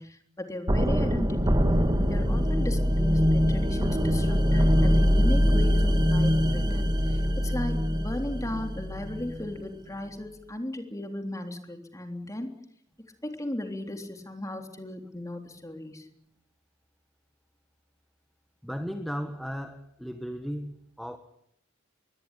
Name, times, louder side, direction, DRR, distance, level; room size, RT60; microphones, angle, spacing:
voice 1, 0.0-1.6 2.1-12.5 13.2-16.0, left 1 dB, 15° left, 5 dB, 3.4 m, -36 dB
sound 1, 0.7-9.5, equal, 20° right, 2.3 m, -23 dB
voice 2, 18.6-21.2, equal, ahead, 7 dB, 1.4 m, -35 dB
23.0 x 18.5 x 10.0 m, 0.74 s
head